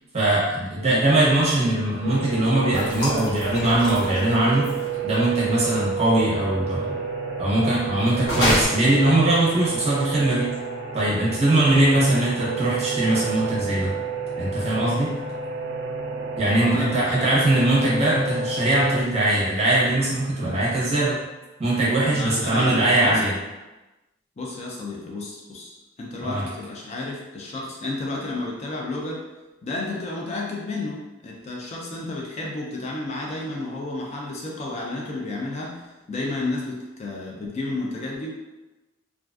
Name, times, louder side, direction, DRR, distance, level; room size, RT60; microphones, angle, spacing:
voice 1, 0.1-7.0 7.4-10.5 10.9-13.9 14.4-15.1 16.4-21.2 21.6-23.3 26.2-26.4, right 1 dB, 35° right, -6 dB, 0.7 m, -21 dB
sound 1, 2.0-19.0, right 5 dB, 65° right, 0.4 m, -30 dB
sound 2, 2.7-4.9 8.2-8.6, equal, 80° left, 1.1 m, -26 dB
voice 2, 16.5-17.4 22.1-23.2 24.4-29.2 29.6-38.3, left 2 dB, 35° left, -2 dB, 0.4 m, -31 dB
2.4 x 2.3 x 2.3 m, 1.1 s
head